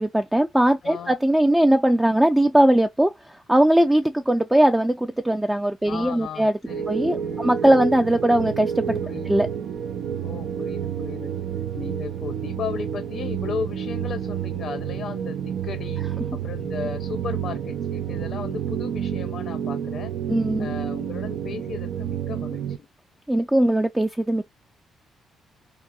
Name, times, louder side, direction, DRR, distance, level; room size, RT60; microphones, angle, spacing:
voice 1, 0.0-3.1 3.5-6.5 6.9-9.0 9.3-9.5 20.3-20.7 23.3-24.5, right 1 dB, 10° right, 0.3 m, -20 dB
voice 2, 0.8-1.1 5.8-7.5 9.0-9.4 10.2-11.3 11.7-16.1 16.3-20.1 20.6-22.9, left 6 dB, 65° left, 0.6 m, -35 dB
sound 1, 6.7-22.8, right 8 dB, 75° right, 0.4 m, -29 dB
3.5 x 2.0 x 2.3 m
cardioid pair, 90°, 0 cm